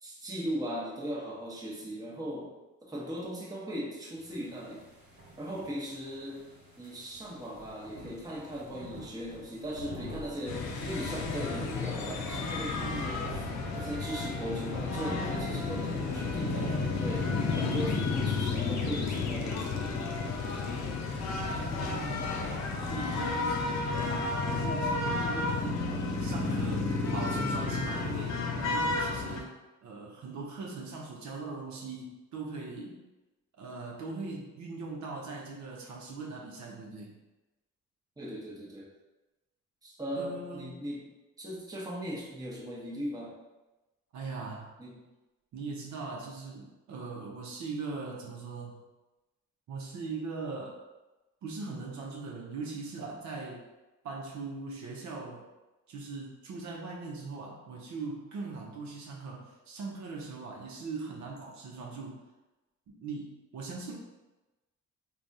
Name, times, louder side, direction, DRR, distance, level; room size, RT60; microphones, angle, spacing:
voice 1, 0.0-2.5 2.8-4.8 5.4-6.5 6.8-13.3 13.7-19.9 38.2-38.9 39.8-41.1 41.4-43.3 44.8-45.0, equal, 10° right, -5 dB, 0.8 m, -38 dB
sound 1, 4.2-22.9, equal, 50° right, 1.4 m, -46 dB
sound 2, 10.5-29.4, left 3 dB, 65° left, 0.6 m, -32 dB
voice 2, 12.8-13.2 21.4-22.4 22.8-23.6 24.0-25.9 26.2-29.5 29.8-33.0 33.6-37.2 40.1-40.9 44.1-44.7 45.5-48.8 49.7-50.8 51.4-53.6 54.0-55.4 55.9-62.2 62.9-63.9, right 4 dB, 65° right, -2 dB, 0.7 m, -40 dB
3.4 x 2.3 x 2.6 m, 1.1 s
cardioid pair, 90°, 30 cm